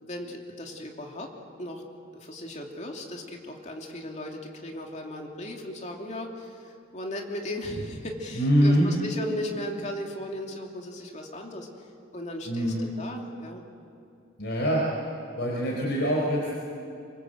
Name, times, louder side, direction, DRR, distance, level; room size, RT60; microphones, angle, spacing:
voice 1, 0.0-1.3 1.6-1.8 2.2-11.9 12.1-13.6, left 1 dB, 35° left, 1 dB, 2.8 m, -36 dB
voice 2, 8.3-8.9 12.5-12.8 14.4-14.8 15.4-16.5, equal, 55° left, -3 dB, 4.6 m, -24 dB
26.0 x 25.0 x 7.9 m, 2.6 s
head